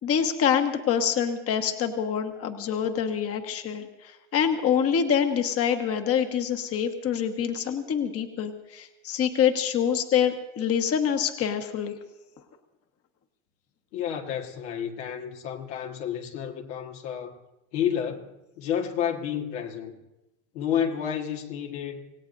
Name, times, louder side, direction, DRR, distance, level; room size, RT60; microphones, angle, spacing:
voice 1, 0.0-12.0, left 8 dB, 40° left, 1.3 m, -26 dB
voice 2, 13.9-17.4 17.7-18.3 18.6-20.0 20.5-22.1, left 8 dB, 80° left, 1.8 m, -30 dB
26.0 x 17.0 x 2.7 m
supercardioid pair, 100°, 35 cm